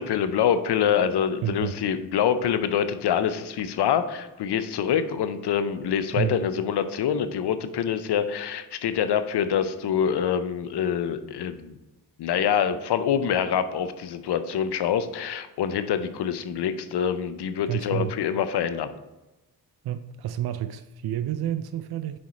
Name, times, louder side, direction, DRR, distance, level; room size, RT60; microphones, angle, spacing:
voice 1, 0.0-11.8 12.2-18.9, left 8 dB, 85° left, 0.6 m, -25 dB
voice 2, 1.4-1.7 6.1-6.4 17.7-18.1 19.8-22.2, right 11 dB, 70° right, 0.5 m, -29 dB
6.4 x 4.4 x 4.1 m
cardioid pair, 50°, 39 cm